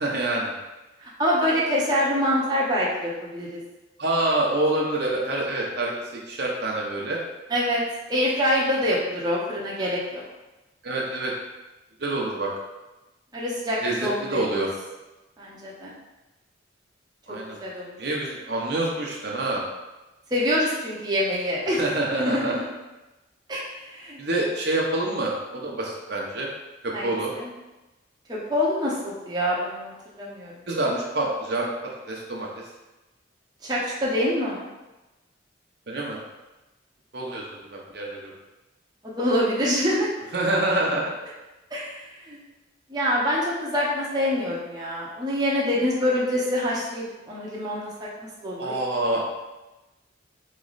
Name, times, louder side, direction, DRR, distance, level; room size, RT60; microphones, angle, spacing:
voice 1, 0.0-0.5 4.0-7.2 10.8-11.3 12.0-12.5 13.8-14.7 17.3-17.6 18.0-19.6 21.7-22.5 24.2-26.5 26.8-27.3 30.7-32.6 35.9-36.2 37.1-38.3 40.3-41.1 48.6-49.2, right 2 dB, 60° right, -2 dB, 0.8 m, -26 dB
voice 2, 1.0-3.6 7.5-7.8 8.1-10.2 13.3-14.4 15.4-15.9 17.3-17.9 20.3-21.8 22.2-22.6 23.5-24.2 26.9-27.5 28.3-30.5 33.6-34.7 39.0-40.1 41.7-41.9 42.2-42.4 42.9-48.8, left 1 dB, 20° right, -6 dB, 0.8 m, -26 dB
4.2 x 3.2 x 4.0 m, 1.1 s
head